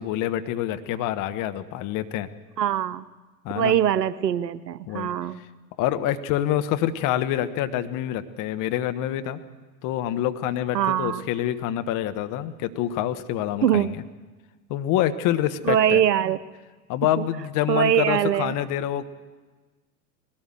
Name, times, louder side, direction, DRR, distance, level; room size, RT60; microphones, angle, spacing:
voice 1, 0.0-2.3 3.4-3.7 4.9-5.1 5.8-9.4 9.8-14.0 14.7-16.0 16.9-19.0, left 12 dB, 40° left, 10 dB, 1.3 m, -26 dB
voice 2, 2.6-3.1 3.5-5.4 10.7-11.3 13.6-13.9 15.6-16.4 17.2-17.3 17.7-18.5, right 10 dB, 75° right, 16 dB, 0.9 m, -22 dB
21.0 x 18.0 x 7.8 m, 1.3 s
figure-of-eight pair, 90°, 50 cm